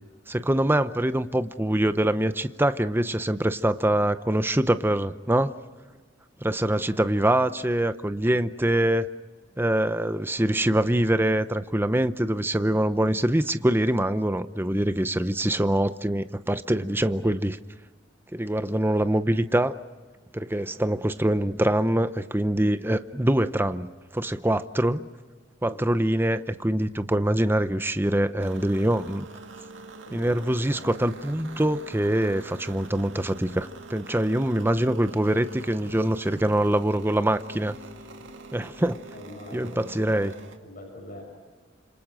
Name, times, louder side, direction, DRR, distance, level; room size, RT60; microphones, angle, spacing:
voice 1, 0.3-5.5 6.4-9.1 9.6-17.6 18.3-19.8 20.3-25.1 25.6-29.3 30.1-37.8 38.5-39.0 39.5-40.3, right 1 dB, 10° right, 11 dB, 0.7 m, -24 dB
voice 2, 25.6-26.0 30.0-31.0 38.2-38.3 39.1-40.3 40.6-41.2, left 1 dB, 50° left, 1 dB, 6.2 m, -44 dB
sound 1, 28.4-40.6, right 3 dB, 80° right, 2.1 m, -44 dB
29.5 x 27.0 x 6.3 m, 1.4 s
head